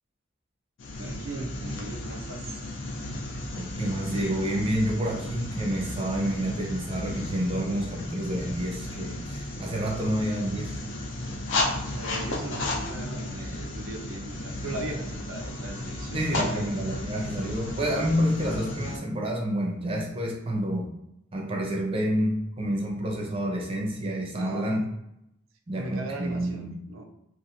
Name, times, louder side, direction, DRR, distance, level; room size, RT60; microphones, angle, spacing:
sound 1, 0.8-19.0, left 2 dB, 75° left, 0.5 m, -34 dB
voice 1, 1.0-2.6 11.7-16.7 24.4-24.9 25.8-27.1, right 2 dB, 85° right, 4 dB, 0.5 m, -38 dB
voice 2, 3.6-10.8 16.1-20.9 21.3-24.8 25.7-26.7, equal, 25° right, 0 dB, 0.4 m, -29 dB
2.8 x 2.4 x 2.5 m, 0.84 s
head